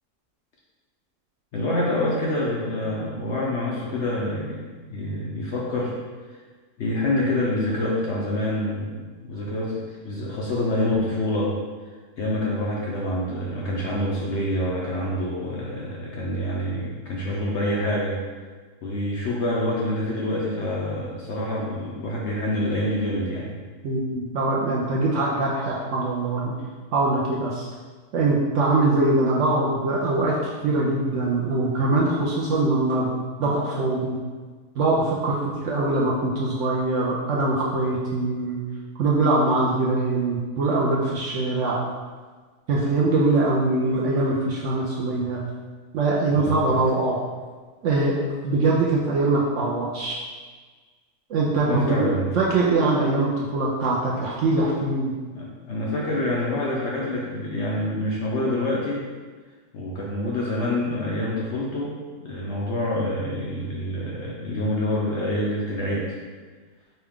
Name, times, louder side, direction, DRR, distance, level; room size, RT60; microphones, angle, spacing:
voice 1, 1.5-5.9 6.8-11.5 12.2-18.2 18.8-23.5 45.1-45.2 46.3-46.7 51.6-52.4 55.3-59.1 59.7-66.2, left 1 dB, 65° left, -4 dB, 0.7 m, -26 dB
voice 2, 23.8-26.5 26.9-27.7 28.1-33.1 33.4-34.2 34.8-38.6 39.0-41.8 42.7-45.4 45.9-47.2 47.8-48.2 48.4-50.2 51.3-52.1 52.4-55.1, right 2 dB, 65° right, -4 dB, 0.8 m, -22 dB
5.3 x 2.3 x 3.5 m, 1.5 s
omnidirectional pair, 1.7 m